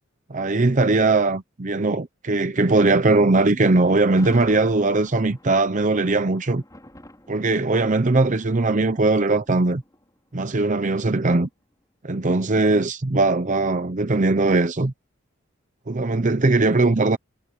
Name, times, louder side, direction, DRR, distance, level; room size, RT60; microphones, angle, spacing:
voice 1, 0.3-6.6 7.3-9.8 10.3-11.5 12.0-14.9 15.9-17.2, right 2 dB, 40° right, 0.8 m, -20 dB
Thunder, 3.7-10.9, left 1 dB, 15° left, 5.2 m, -47 dB
head